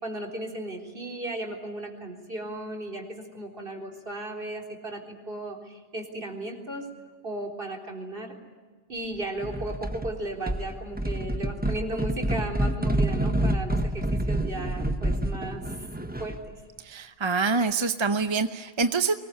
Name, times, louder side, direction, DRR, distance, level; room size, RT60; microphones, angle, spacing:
voice 1, 0.0-6.8 7.2-8.3 8.9-15.9 16.2-16.6, right 1 dB, 55° right, 2 dB, 4.1 m, -35 dB
sound 1, 9.4-10.1 10.5-16.5, right 1 dB, 10° right, 1.1 m, -28 dB
voice 2, 16.8-19.1, right 4 dB, 30° right, 9 dB, 0.7 m, -26 dB
23.5 x 21.0 x 10.0 m, 1.4 s
omnidirectional pair, 1.1 m